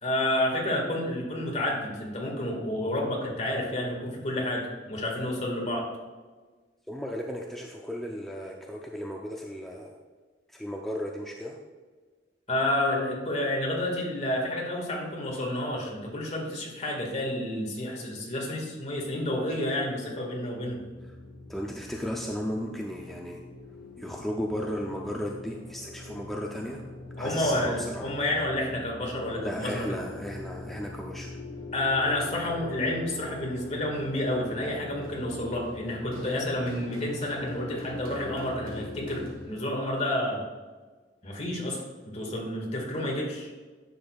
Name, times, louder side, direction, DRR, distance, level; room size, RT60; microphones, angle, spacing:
voice 1, 0.0-5.9 12.5-20.8 27.2-29.8 31.7-40.4 41.2-41.8 42.1-43.5, left 1 dB, 40° left, -1 dB, 1.8 m, -30 dB
voice 2, 6.9-10.0 10.5-11.6 21.0-21.2 21.5-23.4 24.0-26.8 27.2-28.1 29.4-31.3, equal, ahead, -1 dB, 0.5 m, -35 dB
sound 1, 20.6-39.3, left 2 dB, 70° left, 1.3 m, -42 dB
Run, 33.3-39.7, equal, 55° right, 2.0 m, -47 dB
10.0 x 6.8 x 2.4 m, 1.4 s
head